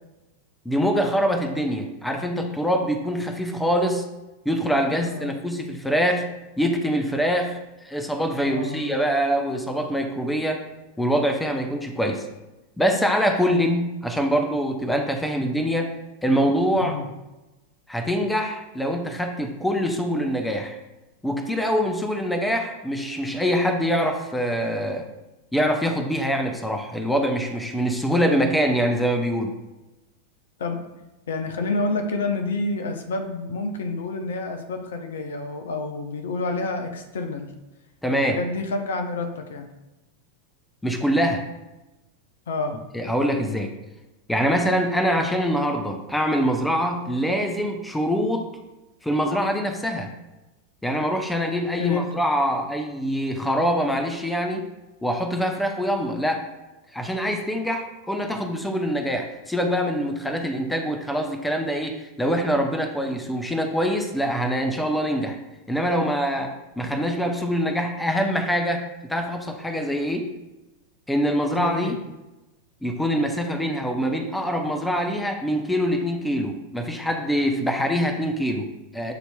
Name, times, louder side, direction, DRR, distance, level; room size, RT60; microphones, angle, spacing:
voice 1, 0.7-4.0 4.5-6.3 6.6-10.6 11.0-12.2 12.8-15.9 16.2-17.0 17.9-20.8 21.2-25.1 25.5-29.6 38.0-38.4 40.8-41.4 42.9-43.7 44.3-48.5 49.0-50.1 50.8-54.7 55.0-56.4 56.9-65.4 65.7-70.3 71.1-72.0 72.8-79.1, equal, 5° left, 4 dB, 0.5 m, -24 dB
voice 2, 5.1-5.4 8.4-9.0 16.8-17.0 30.6-30.8 31.3-37.5 38.1-39.7 42.5-42.8 51.8-52.2 71.5-71.9, left 3 dB, 60° left, 5 dB, 0.5 m, -29 dB
7.6 x 2.7 x 2.2 m, 1.0 s
figure-of-eight pair, 90°, 0 cm